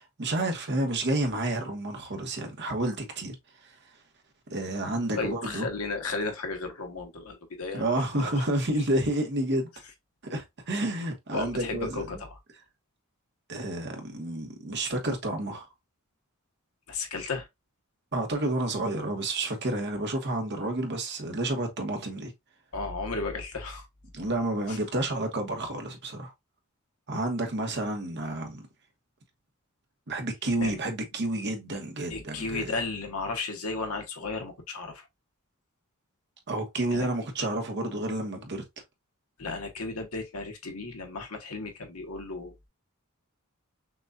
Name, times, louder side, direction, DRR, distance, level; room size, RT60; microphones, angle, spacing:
voice 1, 0.0-3.3 3.6-3.8 4.5-5.7 7.7-9.7 10.2-12.2 13.5-15.7 18.1-22.3 24.1-26.3 27.1-28.7 30.1-32.8 36.5-38.6, right 1 dB, 50° right, 1.2 m, -30 dB
voice 2, 5.2-7.8 8.2-8.3 11.3-12.2 16.9-17.5 22.7-23.9 24.7-24.8 30.6-30.8 32.1-35.1 36.9-37.1 39.4-42.7, left 3 dB, 80° left, 1.2 m, -34 dB
6.1 x 2.4 x 2.6 m
head